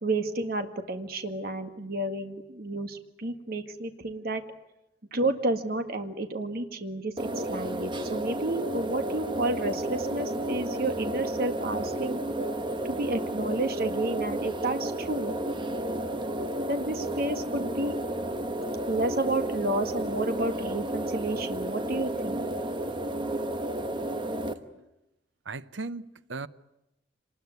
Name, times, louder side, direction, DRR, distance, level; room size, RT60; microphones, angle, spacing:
voice 1, 0.0-4.4 5.1-12.2 12.8-15.3 16.7-18.0 18.9-22.4, right 2 dB, 55° right, 1.8 m, -31 dB
sound 1, 7.2-24.5, right 1 dB, 25° right, 1.3 m, -32 dB
voice 2, 25.4-26.5, right 3 dB, 85° right, 0.9 m, -37 dB
26.5 x 20.0 x 9.4 m
head